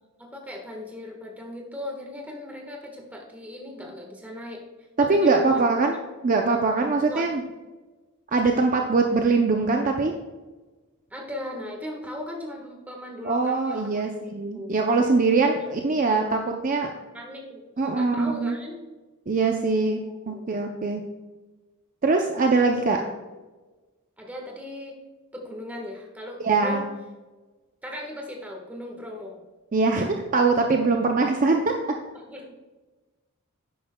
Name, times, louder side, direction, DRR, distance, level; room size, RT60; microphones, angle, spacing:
voice 1, 0.2-4.6 5.0-5.8 7.0-7.3 11.1-14.2 14.5-14.7 17.1-18.8 20.1-20.4 24.2-25.0 25.3-26.8 27.8-29.4 32.1-32.5, left 1 dB, 5° right, 0 dB, 1.3 m, -38 dB
voice 2, 5.0-6.0 6.2-7.4 8.3-10.1 13.2-16.9 17.8-18.6 19.3-21.0 22.0-23.0 26.4-26.8 29.7-31.8, right 3 dB, 35° right, 3 dB, 0.5 m, -22 dB
11.0 x 9.0 x 2.2 m, 1.2 s
head